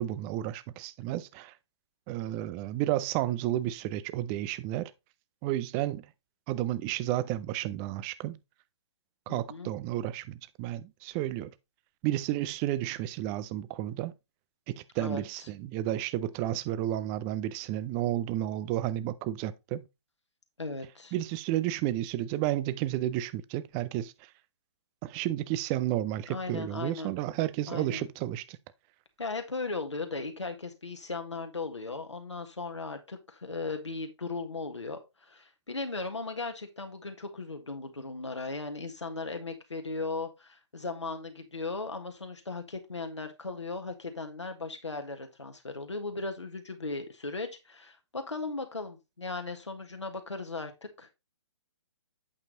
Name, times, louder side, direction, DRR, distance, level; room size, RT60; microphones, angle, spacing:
voice 1, 0.0-1.5 2.1-4.9 5.4-6.1 6.5-8.4 9.3-11.5 12.0-14.1 14.7-19.8 21.1-24.1 25.0-28.6, right 13 dB, 15° right, 0.4 m, -32 dB
voice 2, 9.3-9.7 15.0-15.5 20.6-21.1 26.3-27.1 27.7-28.1 29.2-51.1, left 3 dB, 80° left, 1.5 m, -37 dB
8.4 x 4.5 x 3.8 m
figure-of-eight pair, 130°, 15 cm